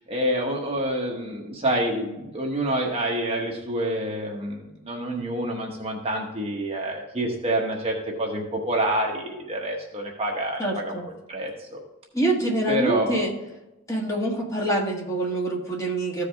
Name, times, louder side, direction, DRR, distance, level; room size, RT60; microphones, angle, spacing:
voice 1, 0.1-11.0 11.3-11.8 12.7-13.2, right 1 dB, 25° right, -1 dB, 1.1 m, -27 dB
voice 2, 10.6-11.1 12.1-13.3 13.9-16.3, right 1 dB, 15° left, -2 dB, 1.5 m, -25 dB
14.5 x 4.8 x 3.5 m, 0.97 s
head